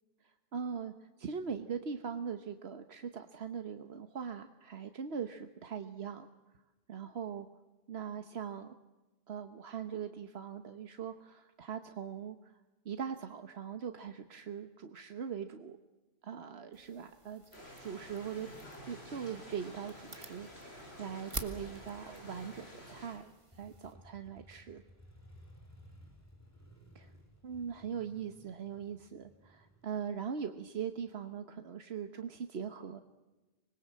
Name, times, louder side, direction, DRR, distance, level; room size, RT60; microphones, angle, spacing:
voice 1, 0.5-6.3 6.9-7.5 7.9-8.8 9.3-12.6 12.8-15.8 16.2-17.4 17.8-18.5 18.8-24.8 26.9-27.1 27.4-33.0, right 7 dB, 85° right, 8 dB, 1.3 m, -41 dB
sound 1, 16.7-23.9, right 2 dB, 30° right, 1.7 m, -49 dB
sound 2, 17.5-23.2, equal, 90° left, 7.8 m, -51 dB
Motorcycle, 23.5-31.2, equal, 15° left, 3.9 m, -58 dB
26.0 x 21.0 x 7.7 m, 1.1 s
omnidirectional pair, 1.0 m